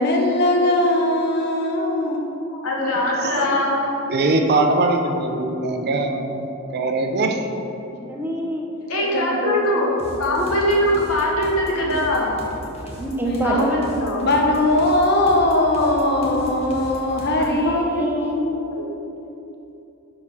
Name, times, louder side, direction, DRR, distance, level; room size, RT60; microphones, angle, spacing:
voice 1, 0.0-2.2 9.1-9.3 13.3-13.6 14.2-18.4, left 1 dB, 50° left, 0 dB, 0.8 m, -20 dB
voice 2, 2.5-3.9 8.9-9.9 10.2-12.4 13.4-14.2 17.4-18.9, left 1 dB, 85° left, -3 dB, 1.3 m, -22 dB
voice 3, 3.2-3.6 4.1-6.5 6.7-7.4, right 2 dB, 50° right, 4 dB, 0.5 m, -21 dB
voice 4, 8.0-8.6 9.0-11.0 12.8-13.7 16.1-16.6 17.9-18.4, right 1 dB, 10° right, -2 dB, 0.8 m, -28 dB
sound 1, 10.0-17.7, left 1 dB, 30° left, 1.1 m, -37 dB
4.8 x 4.7 x 5.6 m, 2.9 s
head